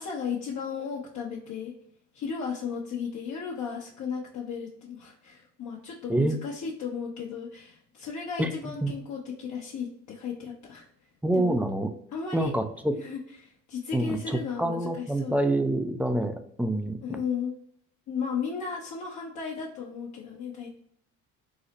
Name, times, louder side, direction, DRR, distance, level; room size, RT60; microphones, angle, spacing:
voice 1, 0.0-1.7 2.1-11.5 12.1-12.5 13.0-15.3 17.0-17.5 18.1-20.8, left 6 dB, 55° left, -3 dB, 0.8 m, -35 dB
voice 2, 8.4-9.0 11.2-11.9 12.3-13.0 13.9-17.2, right 1 dB, 5° right, 7 dB, 0.4 m, -27 dB
3.9 x 2.1 x 2.8 m, 0.69 s
supercardioid pair, 75°, 33 cm